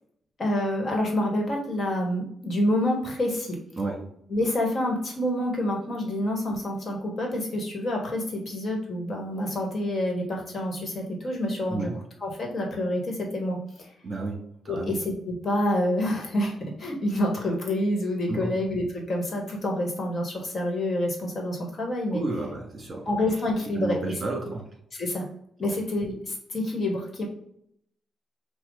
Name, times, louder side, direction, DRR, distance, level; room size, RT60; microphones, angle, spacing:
voice 1, 0.4-3.6 4.3-11.9 12.2-13.9 14.7-22.2 23.0-24.0 24.9-25.2 25.6-27.3, left 1 dB, 45° left, 0 dB, 1.5 m, -27 dB
voice 2, 14.0-14.4 14.6-14.9 18.3-18.5 22.1-23.0 23.8-24.6, right 2 dB, 30° right, -1 dB, 1.9 m, -31 dB
5.9 x 2.3 x 3.8 m, 0.70 s
cardioid pair, 105°, 0 cm